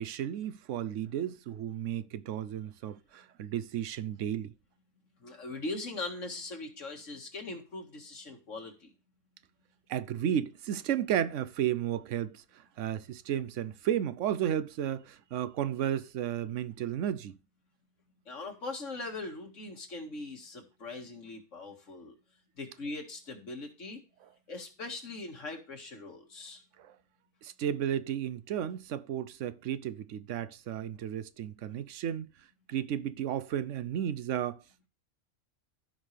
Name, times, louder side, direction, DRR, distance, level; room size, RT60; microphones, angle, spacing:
voice 1, 0.0-4.5 9.9-17.4 26.8-26.9 27.4-32.3 32.7-34.6, right 10 dB, 90° right, 1.0 m, -33 dB
voice 2, 5.2-8.9 18.3-22.1 22.6-24.0 24.5-26.6, left 2 dB, 90° left, 2.3 m, -41 dB
15.0 x 5.5 x 3.3 m
omnidirectional pair, 1.2 m